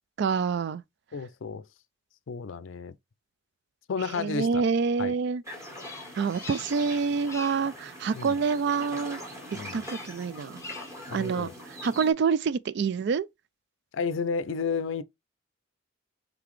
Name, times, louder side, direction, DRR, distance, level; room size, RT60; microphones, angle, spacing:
voice 1, 0.2-0.8 4.1-5.4 6.2-9.2 9.7-10.6 11.1-11.5 11.8-13.3, right 5 dB, 60° right, 0.3 m, -27 dB
voice 2, 1.1-1.6 2.3-2.9 3.9-4.6 5.0-5.1 8.1-8.4 9.5-9.8 11.1-11.5 13.9-15.0, left 5 dB, 75° left, 0.4 m, -32 dB
sound 1, 5.4-12.1, equal, 15° right, 1.5 m, -42 dB
Bird vocalization bird call bird song, 5.7-6.9 7.2-7.7 9.8-10.2 10.5-11.1, left 4 dB, 15° left, 0.5 m, -44 dB
3.9 x 3.3 x 3.1 m
head